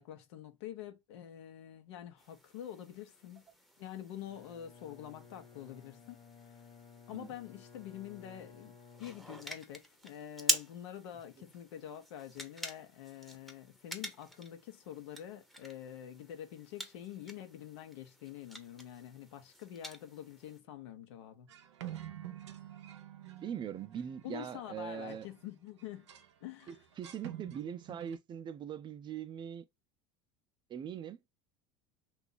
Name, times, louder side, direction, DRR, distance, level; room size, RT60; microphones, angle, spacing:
voice 1, 0.0-3.4 3.8-6.2 7.1-8.7 9.0-21.5 24.2-26.1 26.4-26.8, left 11 dB, 75° left, 0.7 m, -46 dB
sound 1, 2.2-20.6, equal, ahead, 0.7 m, -44 dB
Bowed string instrument, 4.2-9.7, left 6 dB, 35° left, 1.0 m, -57 dB
sound 2, 21.5-25.4 25.8-26.3 26.6-28.2, right 12 dB, 85° right, 0.5 m, -48 dB
voice 2, 23.4-25.3 26.7-29.6 30.7-31.2, right 8 dB, 30° right, 0.5 m, -41 dB
2.8 x 2.4 x 3.8 m
hypercardioid pair, 80°, 15 cm